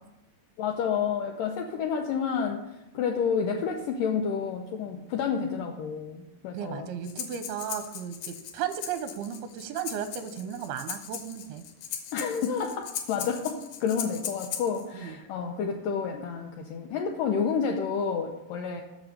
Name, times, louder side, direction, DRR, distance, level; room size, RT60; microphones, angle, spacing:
voice 1, 0.6-6.9 12.1-18.8, left 6 dB, 85° left, 3 dB, 1.9 m, -30 dB
voice 2, 6.5-11.6 14.9-15.2, right 8 dB, 85° right, 9 dB, 2.6 m, -35 dB
Breathing, 7.0-14.8, left 8 dB, 70° left, 2.3 m, -39 dB
7.4 x 7.0 x 7.7 m, 0.96 s
omnidirectional pair, 4.7 m